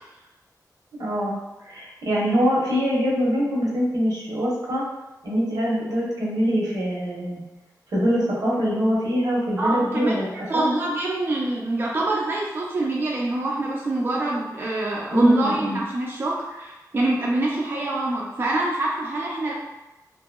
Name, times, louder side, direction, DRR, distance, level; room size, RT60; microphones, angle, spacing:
voice 1, 0.9-1.4 1.6-4.8 5.2-7.4 7.9-10.6 15.1-15.8, equal, 75° right, -5 dB, 0.9 m, -24 dB
voice 2, 9.6-19.5, right 2 dB, 35° right, -3 dB, 0.3 m, -25 dB
2.8 x 2.6 x 2.2 m, 1.0 s
wide cardioid pair, 140°, 7 cm